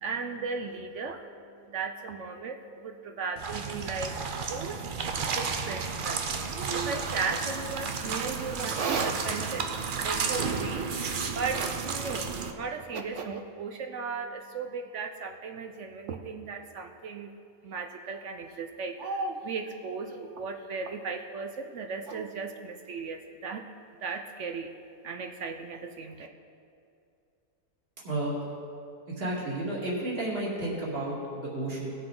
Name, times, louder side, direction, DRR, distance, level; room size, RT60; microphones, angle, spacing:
voice 1, 0.0-1.2 1.7-4.1 4.5-4.8 5.3-9.7 10.0-17.3 17.6-23.7 24.0-24.7 25.0-26.3, right 4 dB, 60° right, 5 dB, 0.8 m, -35 dB
sound 1, 3.4-12.5, right 5 dB, 90° right, 0.4 m, -32 dB
voice 2, 28.0-28.5 29.1-32.0, right 1 dB, 35° right, -5 dB, 2.5 m, -32 dB
18.5 x 6.8 x 3.8 m, 2.5 s
omnidirectional pair, 1.8 m